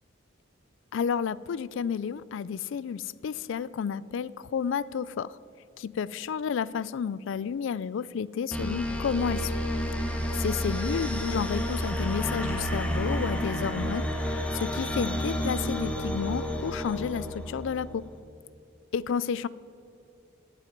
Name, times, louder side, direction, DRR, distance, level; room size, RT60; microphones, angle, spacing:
voice 1, 0.9-5.4 5.8-9.5 10.3-14.1 14.5-18.0 18.9-19.5, left 7 dB, 70° left, 20 dB, 0.3 m, -31 dB
sound 1, 8.5-17.9, equal, 5° left, 1.2 m, -30 dB
18.5 x 7.6 x 5.2 m, 2.8 s
head